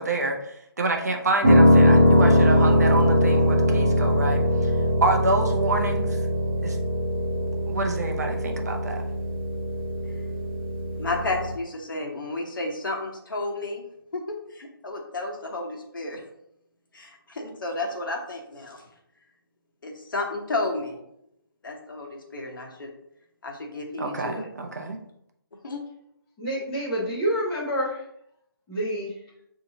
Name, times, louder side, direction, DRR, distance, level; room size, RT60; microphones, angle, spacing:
voice 1, 0.0-4.7 5.0-6.2 6.6-6.8 7.7-9.0 24.0-25.0, right 2 dB, 45° right, 3 dB, 0.5 m, -27 dB
Piano, 1.4-11.5, equal, 20° right, 1.0 m, -21 dB
voice 2, 11.0-13.8 14.1-16.2 16.9-18.8 19.8-21.0 21.6-22.9 23.4-24.5 25.6-25.8, left 2 dB, 60° left, 1 dB, 1.1 m, -32 dB
voice 3, 26.4-28.0 28.7-29.1, equal, 5° left, -12 dB, 0.5 m, -27 dB
6.4 x 2.8 x 2.8 m, 0.77 s
hypercardioid pair, 175°, 12 cm